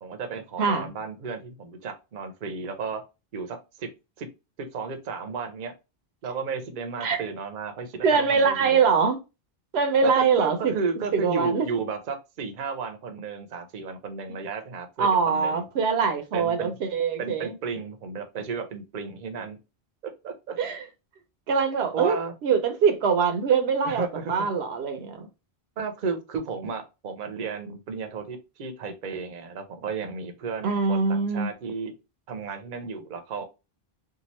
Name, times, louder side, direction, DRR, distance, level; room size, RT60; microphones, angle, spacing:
voice 1, 0.0-3.0 3.3-3.9 4.2-4.3 4.6-5.7 6.2-8.8 10.0-15.6 16.3-16.8 17.2-19.6 20.2-20.6 21.9-22.3 23.8-24.3 25.8-32.0 32.3-33.4, right 5 dB, 55° right, 0.7 m, -33 dB
voice 2, 8.0-9.2 9.7-10.7 11.1-11.7 15.0-17.5 20.6-20.8 21.5-22.2 22.4-25.3 30.6-31.5, right 5 dB, 80° right, 0.9 m, -23 dB
2.8 x 2.3 x 3.0 m
omnidirectional pair, 1.0 m